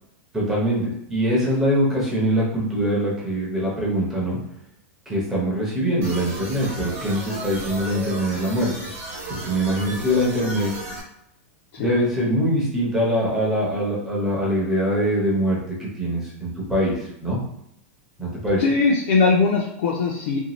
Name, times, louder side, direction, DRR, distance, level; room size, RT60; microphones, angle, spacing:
voice 1, 0.3-4.4 5.1-8.7 9.3-10.7 11.8-17.4 18.2-18.6, equal, 5° right, -6 dB, 0.7 m, -23 dB
sound 1, 6.0-11.0, right 2 dB, 85° right, 0.8 m, -34 dB
voice 2, 18.6-20.4, left 4 dB, 60° left, -3 dB, 0.5 m, -20 dB
2.7 x 2.2 x 3.0 m, 0.79 s
supercardioid pair, 175°, 8 cm